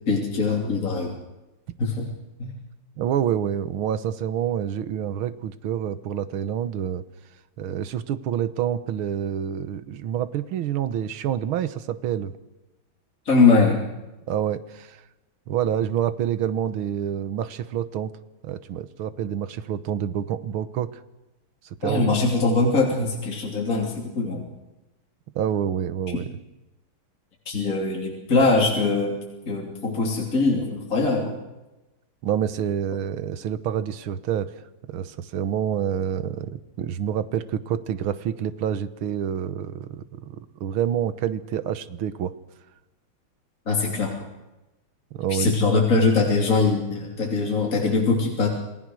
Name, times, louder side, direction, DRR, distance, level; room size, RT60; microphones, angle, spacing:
voice 1, 0.1-1.1 1.8-2.0 2.4-2.5 13.3-13.8 21.8-24.4 27.5-29.2 29.5-31.3 43.7-44.1 45.3-48.5, left 3 dB, 40° left, 0 dB, 3.5 m, -22 dB
voice 2, 3.0-7.0 7.6-12.4 14.3-15.0 15.5-18.1 18.4-21.0 21.6-22.0 25.4-26.3 32.2-34.6 34.9-42.3 45.1-45.5, right 9 dB, 85° right, 13 dB, 1.9 m, -27 dB
29.0 x 19.0 x 6.4 m, 1.0 s
omnidirectional pair, 2.2 m